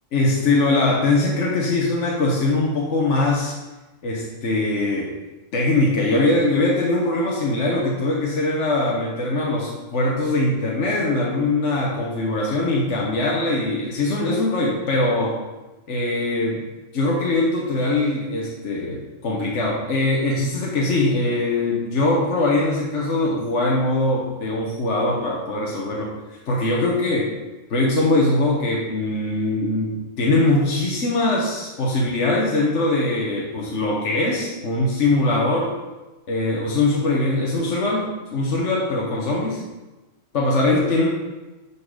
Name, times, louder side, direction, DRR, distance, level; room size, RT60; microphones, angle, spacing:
voice 1, 0.1-3.5 4.0-5.1 5.5-15.4 15.9-16.6 16.9-27.3 27.7-35.7 36.3-39.6 40.3-41.1, left 2 dB, 60° left, -3 dB, 1.4 m, -22 dB
9.8 x 4.4 x 4.9 m, 1.1 s
omnidirectional pair, 1.4 m